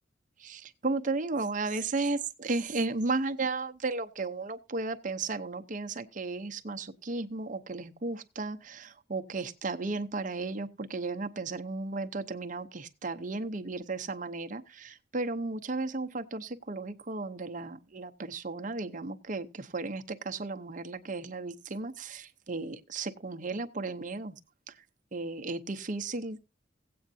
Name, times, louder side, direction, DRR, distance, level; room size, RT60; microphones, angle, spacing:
voice 1, 0.4-24.4 24.7-24.8 25.1-26.4, right 3 dB, 45° right, 0.7 m, -34 dB
16.5 x 8.6 x 2.7 m
head